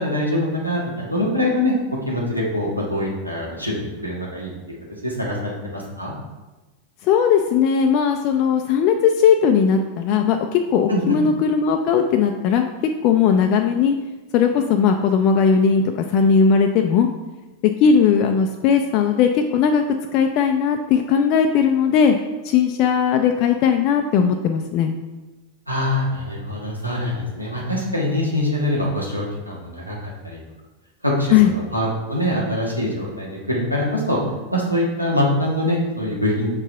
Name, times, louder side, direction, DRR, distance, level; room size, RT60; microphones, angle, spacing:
voice 1, 0.0-1.7 2.0-4.5 5.0-6.1 10.9-11.2 25.7-30.4 31.0-34.2 34.5-36.6, left 1 dB, 90° right, -4 dB, 1.6 m, -24 dB
voice 2, 7.0-12.6 13.0-13.9 14.3-17.1 17.6-19.8 20.1-22.2 22.4-24.9 31.3-31.5, left 7 dB, 40° left, 4 dB, 0.4 m, -18 dB
4.8 x 4.5 x 5.5 m, 1.1 s
figure-of-eight pair, 90°, 0 cm